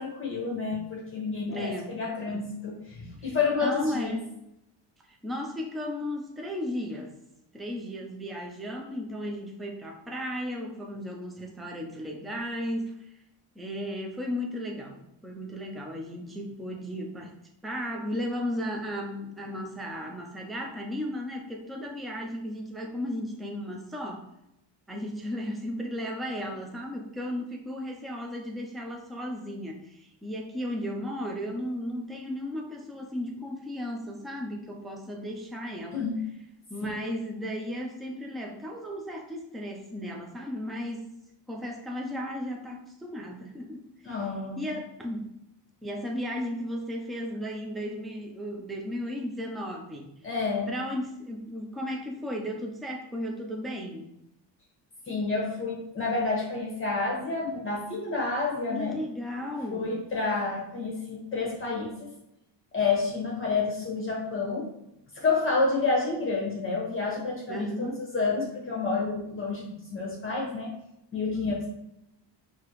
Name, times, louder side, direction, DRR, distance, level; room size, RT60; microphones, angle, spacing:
voice 1, 0.0-4.2 35.9-36.2 36.8-36.9 44.0-44.7 50.2-50.7 55.1-59.0 59.7-62.1 62.7-64.7 65.1-70.7 71.1-71.7, left 4 dB, 25° left, -4 dB, 1.2 m, -29 dB
voice 2, 1.5-2.0 2.3-2.5 3.2-3.4 3.6-4.2 5.1-7.1 7.5-13.1 13.6-17.3 17.6-24.3 24.9-36.1 36.7-41.1 41.5-44.2 44.6-45.3 45.8-50.1 50.7-54.1 58.7-59.9 67.5-68.0 71.3-71.7, equal, ahead, 1 dB, 0.4 m, -35 dB
5.8 x 2.8 x 3.0 m, 0.84 s
cardioid pair, 160°, 47 cm